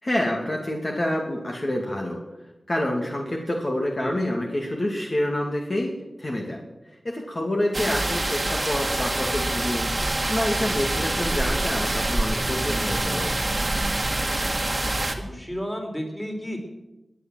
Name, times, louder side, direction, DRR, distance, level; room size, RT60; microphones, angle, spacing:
voice 1, 0.0-2.2 2.7-5.9 6.2-6.6 7.0-13.3, left 1 dB, 35° left, 0 dB, 2.5 m, -27 dB
sound 1, 7.7-15.1, right 2 dB, 30° right, 1.9 m, -26 dB
voice 2, 15.2-16.6, equal, 10° left, 2 dB, 4.0 m, -32 dB
20.0 x 9.3 x 7.6 m, 1.0 s
wide cardioid pair, 75°, 0 cm